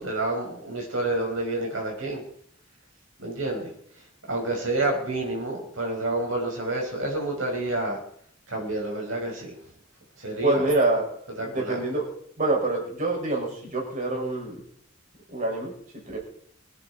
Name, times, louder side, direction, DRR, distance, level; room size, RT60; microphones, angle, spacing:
voice 1, 0.0-2.2 3.2-3.7 4.3-8.0 8.5-9.6 10.2-10.6 11.4-11.8, right 2 dB, 75° right, 0 dB, 5.9 m, -29 dB
voice 2, 10.4-11.1 11.5-12.1 12.4-14.6 15.3-15.7 16.1-16.2, right 2 dB, 40° right, -1 dB, 6.3 m, -25 dB
24.5 x 10.0 x 4.5 m, 0.64 s
head